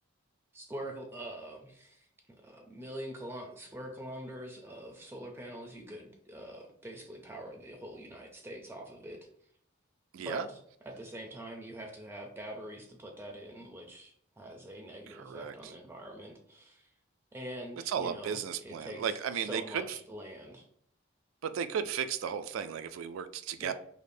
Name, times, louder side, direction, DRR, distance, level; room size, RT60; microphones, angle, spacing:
voice 1, 0.5-9.3 10.2-10.6 10.9-16.9 17.3-20.7 23.6-23.7, right 1 dB, 10° right, 2 dB, 0.4 m, -44 dB
voice 2, 10.1-10.5 15.1-15.7 17.9-20.0 21.4-23.7, right 7 dB, 85° right, 11 dB, 0.3 m, -35 dB
5.0 x 2.1 x 2.6 m, 0.68 s
head